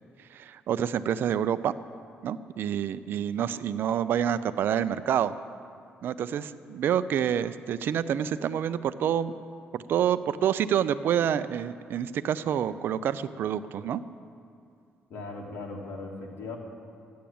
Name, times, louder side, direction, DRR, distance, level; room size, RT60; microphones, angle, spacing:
voice 1, 0.3-1.7 2.2-5.3 6.0-9.3 9.7-14.0, right 9 dB, 65° right, 13 dB, 0.5 m, -27 dB
voice 2, 15.1-16.6, left 3 dB, 70° left, -1 dB, 2.8 m, -38 dB
13.5 x 10.5 x 8.7 m, 2.3 s
cardioid pair, 140°, 4 cm